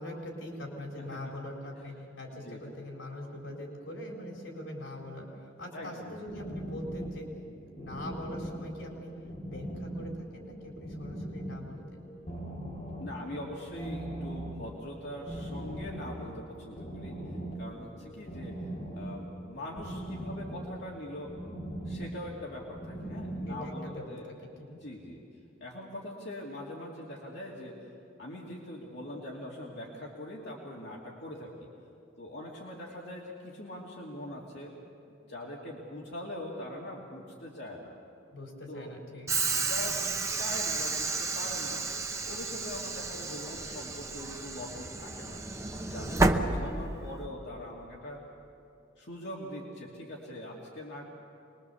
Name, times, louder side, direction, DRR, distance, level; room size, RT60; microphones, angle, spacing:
voice 1, 0.0-7.3 7.8-9.1 9.5-12.0 23.5-24.0 24.4-24.7 38.3-39.3 45.9-46.1 46.5-46.7, left 1 dB, 85° left, -1 dB, 4.2 m, -42 dB
voice 2, 1.0-1.3 2.3-2.6 5.7-6.2 13.0-17.2 17.6-21.4 21.8-24.3 24.7-25.2 25.6-27.9 28.2-31.7 32.2-34.8 35.1-37.9 38.7-38.9 39.6-41.8 42.3-45.4 45.8-48.2 49.0-51.1, left 1 dB, 60° left, -3 dB, 2.6 m, -42 dB
sound 1, 6.2-23.7, right 1 dB, 40° left, 3.7 m, -40 dB
Train / Sliding door, 39.3-47.2, right 3 dB, 15° right, 0.9 m, -31 dB
25.0 x 21.5 x 7.1 m, 2.7 s
head